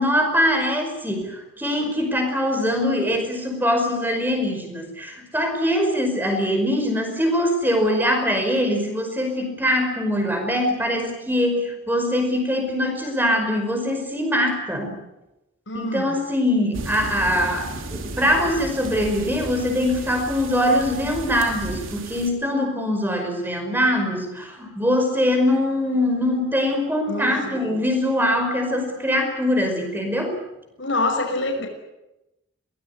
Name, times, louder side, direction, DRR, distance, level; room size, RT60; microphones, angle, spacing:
voice 1, 0.0-15.0 15.7-30.4, left 1 dB, 10° right, 5 dB, 5.3 m, -22 dB
voice 2, 15.7-16.2 27.1-27.8 30.8-31.7, left 2 dB, 65° left, 3 dB, 5.9 m, -26 dB
sound 1, 16.7-22.3, right 2 dB, 80° right, 3.5 m, -34 dB
23.5 x 19.5 x 9.7 m, 0.94 s
head